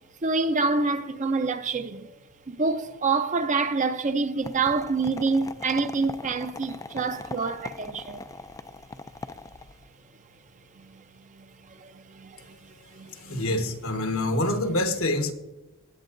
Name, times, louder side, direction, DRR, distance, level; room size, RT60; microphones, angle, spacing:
voice 1, 0.2-2.1 2.5-8.2 10.8-10.9 11.3-11.5 11.8-13.6, right 4 dB, 35° right, 0.6 m, -27 dB
sound 1, 4.4-9.9, left 3 dB, 15° left, 0.3 m, -41 dB
voice 2, 13.1-15.3, left 1 dB, 80° left, 1.3 m, -26 dB
18.0 x 8.2 x 2.6 m
head